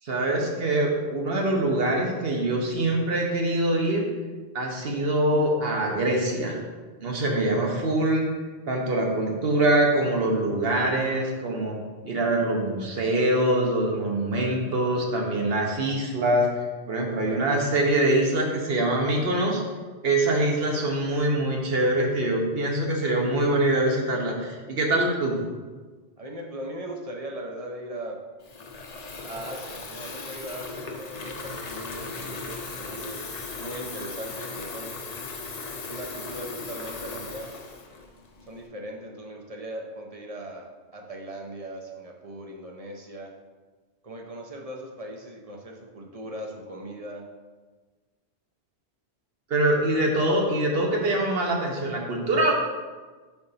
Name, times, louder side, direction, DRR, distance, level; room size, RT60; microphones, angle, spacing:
voice 1, 0.0-4.1 4.5-6.6 7.0-8.3 8.7-11.8 12.0-16.5 16.9-19.6 20.0-25.4 49.5-52.5, right 1 dB, 65° right, 0 dB, 1.1 m, -24 dB
voice 2, 26.2-28.2 29.2-33.2 33.6-35.0 35.9-37.5 38.4-43.3 44.0-47.3, right 1 dB, 40° right, 0 dB, 0.6 m, -39 dB
Water tap faucet / Fill (with liquid), 28.4-38.7, left 3 dB, 45° left, 0.6 m, -37 dB
4.4 x 3.8 x 5.5 m, 1.4 s
omnidirectional pair, 1.1 m